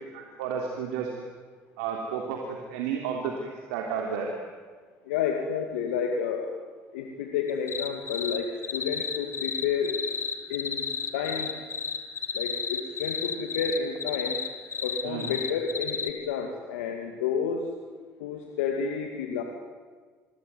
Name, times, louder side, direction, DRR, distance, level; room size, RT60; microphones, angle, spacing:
voice 1, 0.1-1.1 1.8-4.3 15.0-15.4, right 6 dB, 85° right, 1 dB, 3.4 m, -32 dB
voice 2, 5.1-6.5 6.9-10.0 10.5-10.9 11.1-11.5 12.3-14.4 14.8-17.7 18.2-19.4, left 6 dB, 85° left, 3 dB, 2.4 m, -30 dB
sound 1, 7.5-8.4 8.6-16.1, left 6 dB, 40° left, 3.3 m, -31 dB
26.5 x 22.0 x 9.6 m, 1.5 s
hypercardioid pair, 65°, 7 cm